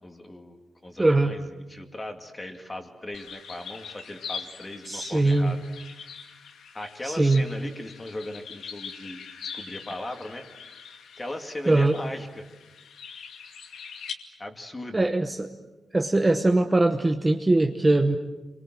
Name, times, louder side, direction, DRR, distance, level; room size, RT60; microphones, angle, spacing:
voice 1, 0.0-5.6 6.7-9.2 9.5-10.5 11.2-12.5 14.4-15.0, left 1 dB, 15° left, 5 dB, 2.4 m, -38 dB
voice 2, 1.0-1.3 4.9-5.6 7.0-7.5 11.7-12.0 14.9-15.5 15.9-18.2, right 2 dB, 15° right, 6 dB, 1.0 m, -21 dB
sound 1, 3.1-14.1, left 6 dB, 85° left, 2.3 m, -42 dB
29.0 x 23.5 x 7.7 m, 1.1 s
wide cardioid pair, 170°, 0 cm